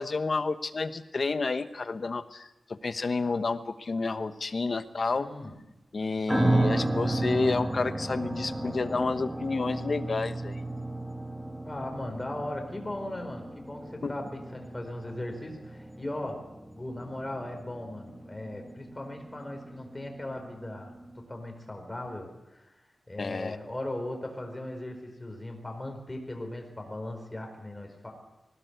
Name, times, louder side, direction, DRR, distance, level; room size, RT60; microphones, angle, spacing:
voice 1, 0.0-2.5 2.8-5.3 5.9-10.6 14.0-14.1 23.2-23.6, left 3 dB, 50° left, 10 dB, 1.1 m, -30 dB
voice 2, 5.1-5.6 11.6-22.7 23.1-28.1, left 1 dB, 15° left, 3 dB, 4.7 m, -38 dB
sound 1, 6.3-21.2, right 2 dB, 5° right, 2.5 m, -34 dB
20.5 x 17.5 x 8.1 m, 0.99 s
wide cardioid pair, 115°, 0 cm